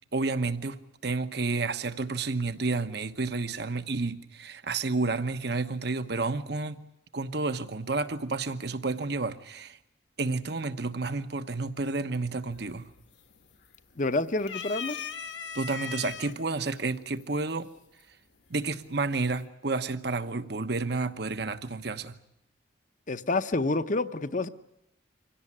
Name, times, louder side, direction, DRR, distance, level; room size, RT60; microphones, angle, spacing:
voice 1, 0.1-0.8 1.0-6.9 7.1-9.8 10.2-12.9 15.5-17.7 18.5-22.2, right 3 dB, 60° right, 1.1 m, -30 dB
sound 1, 12.5-13.0 13.3-14.0 14.4-16.3 17.2-17.3 18.5-19.0, left 6 dB, 70° left, 1.5 m, -38 dB
voice 2, 14.0-15.0 23.1-24.5, left 2 dB, 40° left, 0.8 m, -28 dB
25.0 x 17.0 x 9.9 m
head